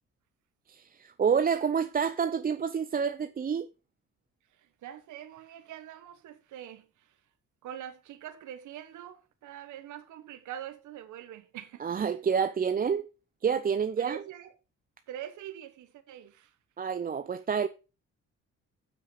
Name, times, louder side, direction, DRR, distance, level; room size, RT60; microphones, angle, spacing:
voice 1, 0.7-3.7 11.8-13.1 13.4-14.2 16.8-17.7, right 6 dB, 30° right, 0.6 m, -28 dB
voice 2, 4.5-7.2 7.6-11.9 14.0-14.5 15.1-16.5, right 10 dB, 75° right, 1.2 m, -44 dB
7.8 x 6.2 x 5.7 m
cardioid pair, 90°, 30 cm